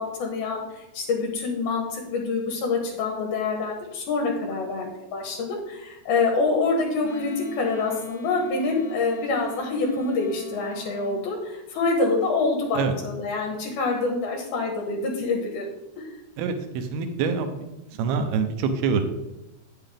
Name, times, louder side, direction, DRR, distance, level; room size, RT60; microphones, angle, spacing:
voice 1, 0.0-15.7 16.0-16.2, left 3 dB, 75° left, 0 dB, 3.1 m, -26 dB
Wind instrument woodwind instrument, 7.0-11.2, right 1 dB, 55° left, 2.4 m, -43 dB
voice 2, 16.4-17.6 18.0-19.0, right 5 dB, 80° right, 7 dB, 2.8 m, -25 dB
9.3 x 7.9 x 3.5 m, 0.97 s
omnidirectional pair, 4.5 m